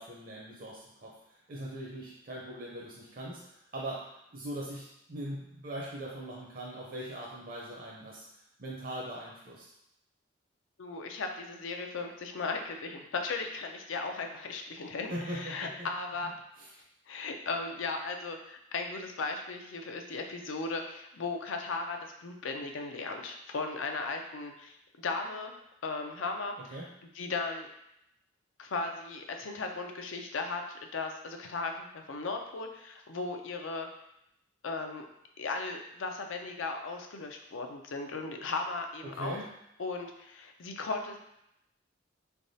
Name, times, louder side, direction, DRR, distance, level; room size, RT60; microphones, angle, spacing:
voice 1, 0.0-8.2 8.6-9.7 15.1-15.9 16.6-16.7 26.7-26.9 39.0-39.5, right 1 dB, 50° right, -4 dB, 0.5 m, -41 dB
voice 2, 10.8-16.4 17.1-25.5 25.8-26.8 27.1-27.7 28.6-33.9 34.6-35.1 35.4-39.4 39.8-41.2, left 3 dB, 90° left, 4 dB, 0.5 m, -36 dB
3.9 x 3.4 x 2.7 m, 0.81 s
head